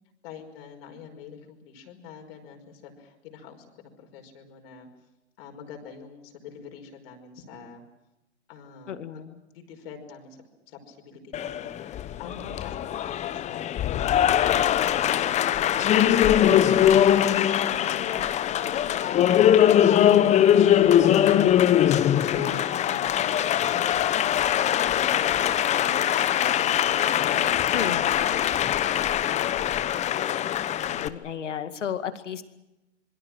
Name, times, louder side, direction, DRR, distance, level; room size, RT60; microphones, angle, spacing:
voice 1, 0.2-4.9 5.4-7.8 8.5-9.3 9.5-10.4 10.7-19.2 19.5-19.9 20.1-25.4 25.7-27.5 28.2-29.6, left 6 dB, 55° left, 3 dB, 5.4 m, -44 dB
voice 2, 8.9-9.4 27.7-28.1 30.8-32.4, left 8 dB, 75° left, 9 dB, 2.3 m, -33 dB
Applause, 11.3-31.1, left 10 dB, 20° left, 0.9 m, -22 dB
27.0 x 23.0 x 6.2 m, 0.94 s
hypercardioid pair, 120°, 36 cm